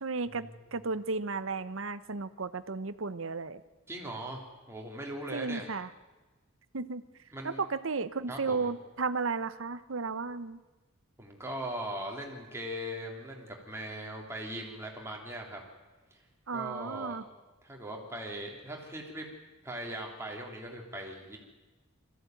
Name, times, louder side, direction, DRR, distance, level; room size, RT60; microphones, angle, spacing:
voice 1, 0.0-3.6 5.3-5.9 6.7-7.0 7.4-10.6 16.5-17.2, right 4 dB, 70° right, 13 dB, 0.9 m, -34 dB
voice 2, 3.9-5.7 7.3-7.6 8.3-8.7 11.2-15.6 16.1-16.2 16.5-17.2 17.6-19.3 19.6-21.4, right 1 dB, 15° right, 0 dB, 3.3 m, -40 dB
21.5 x 15.0 x 9.3 m, 1.2 s
head